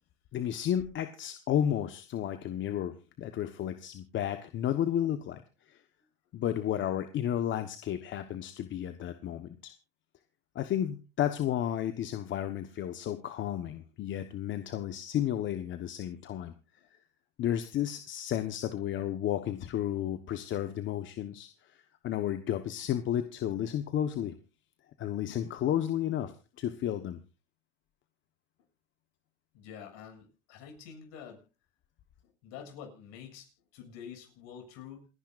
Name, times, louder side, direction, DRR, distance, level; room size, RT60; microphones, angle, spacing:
voice 1, 0.3-5.8 6.3-9.7 10.5-16.5 17.4-24.3 25.0-26.3 26.6-27.2, left 10 dB, 40° left, 9 dB, 1.2 m, -32 dB
voice 2, 29.5-31.4 32.4-35.1, left 8 dB, 60° left, 4 dB, 7.1 m, -47 dB
28.5 x 10.5 x 2.5 m, 0.32 s
supercardioid pair, 120°, 31 cm